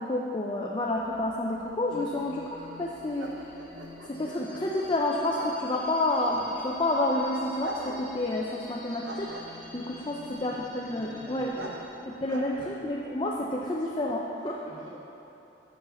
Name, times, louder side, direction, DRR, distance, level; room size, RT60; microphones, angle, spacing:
voice 1, 0.0-3.4 4.1-11.5 12.1-14.6, left 1 dB, 25° left, -2 dB, 0.5 m, -29 dB
sound 1, 0.9-13.4, right 2 dB, 90° right, 0.8 m, -45 dB
sound 2, 1.9-11.9, left 2 dB, 5° left, 1.5 m, -47 dB
voice 2, 9.9-10.2 10.8-11.7 12.1-12.6 14.6-14.9, left 1 dB, 40° left, -8 dB, 2.0 m, -48 dB
7.2 x 6.3 x 5.7 m, 3.0 s
head